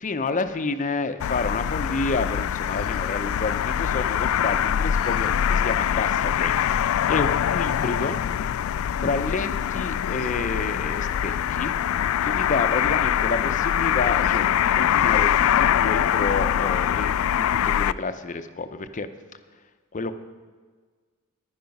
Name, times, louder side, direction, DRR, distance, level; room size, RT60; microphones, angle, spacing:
voice 1, 0.0-8.3 9.0-19.1 19.9-20.1, left 3 dB, 35° left, 10 dB, 0.6 m, -29 dB
sound 1, 1.2-17.9, left 9 dB, 70° left, 0.3 m, -23 dB
11.0 x 10.5 x 5.3 m, 1.5 s
head